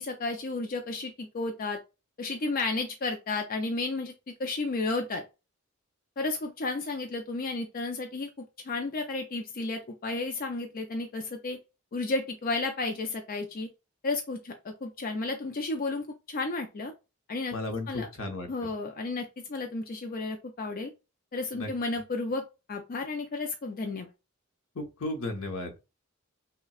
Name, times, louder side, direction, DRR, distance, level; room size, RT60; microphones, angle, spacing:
voice 1, 0.0-1.8 2.2-4.1 4.4-5.2 6.2-11.6 11.9-13.7 14.0-16.9 17.3-17.5 17.9-18.1 18.5-20.9 21.3-22.4 22.7-24.1, left 3 dB, 45° left, 0.5 m, -32 dB
voice 2, 17.5-18.5 21.5-21.7 24.7-25.7, left 2 dB, 75° left, 0.9 m, -34 dB
5.7 x 2.2 x 2.4 m
head